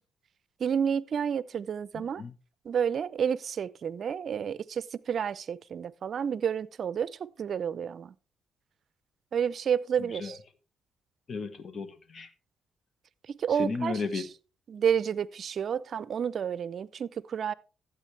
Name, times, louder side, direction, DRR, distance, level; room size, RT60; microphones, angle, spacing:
voice 1, 0.6-2.2 2.7-8.1 9.3-10.4 13.4-14.0 14.7-17.5, right 7 dB, 55° right, 0.5 m, -30 dB
voice 2, 1.9-2.3 10.0-10.4 11.3-12.3 13.5-14.3, left 4 dB, 45° left, 1.3 m, -35 dB
13.0 x 8.2 x 3.3 m
cardioid pair, 90°, 0 cm